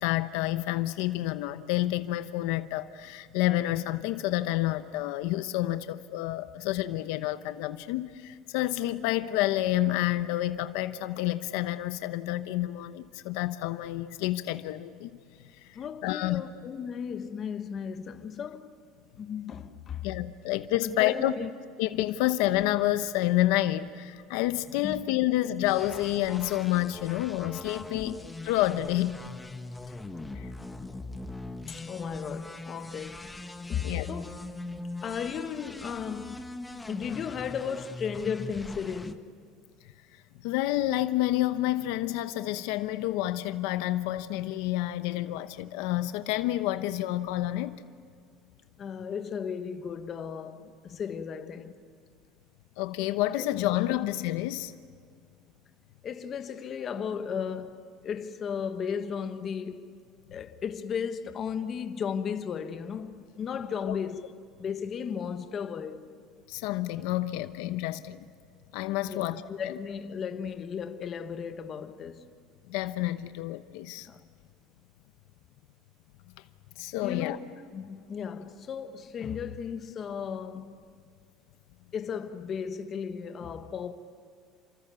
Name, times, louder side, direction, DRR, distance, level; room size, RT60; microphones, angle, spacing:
voice 1, 0.0-15.1 15.7-16.4 20.0-21.3 21.8-28.1 28.5-29.2 30.3-30.5 33.8-34.1 40.4-47.8 52.8-54.7 63.9-64.0 66.5-68.2 68.7-69.7 72.7-74.1 76.8-77.4, left 15 dB, 70° left, 1.0 m, -29 dB
voice 2, 15.7-18.7 19.2-20.1 20.8-21.5 24.8-25.0 27.9-28.2 29.9-30.0 31.7-33.2 33.7-34.4 35.0-36.4 36.9-39.3 48.8-51.8 53.4-53.5 56.0-60.0 60.3-64.3 64.6-66.1 69.0-72.3 74.0-74.2 77.0-77.4 77.7-80.8 81.9-83.9, left 7 dB, 30° left, 1.3 m, -35 dB
sound 1, 25.6-39.1, left 2 dB, 5° left, 1.1 m, -41 dB
30.0 x 26.5 x 7.0 m
cardioid pair, 165°, 0 cm